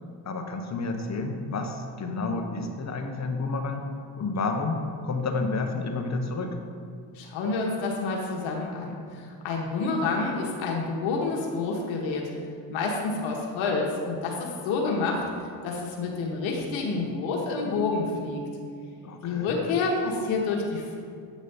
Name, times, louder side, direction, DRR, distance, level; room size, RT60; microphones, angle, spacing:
voice 1, 0.3-3.9 4.2-6.6 19.0-19.5, left 3 dB, 35° left, 4 dB, 0.8 m, -30 dB
voice 2, 7.1-12.3 12.7-15.2 15.6-18.4 19.2-21.0, left 3 dB, 75° left, -1 dB, 1.1 m, -28 dB
7.9 x 3.1 x 5.5 m, 2.2 s
supercardioid pair, 60°, 47 cm